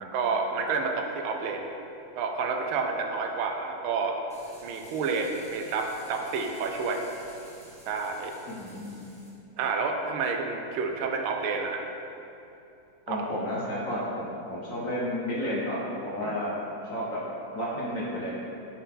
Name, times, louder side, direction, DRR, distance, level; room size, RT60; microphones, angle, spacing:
voice 1, 0.0-1.7 2.2-4.2 4.6-7.0 7.9-8.3 9.6-11.8 13.1-13.2 16.2-16.3, right 4 dB, 80° right, 3 dB, 1.4 m, -29 dB
sound 1, 4.3-9.3, equal, 10° left, 0.4 m, -52 dB
voice 2, 8.5-9.0 13.1-16.5 16.9-17.2 17.5-18.3, equal, 50° left, -6 dB, 1.0 m, -32 dB
8.9 x 4.1 x 3.7 m, 2.8 s
omnidirectional pair, 2.3 m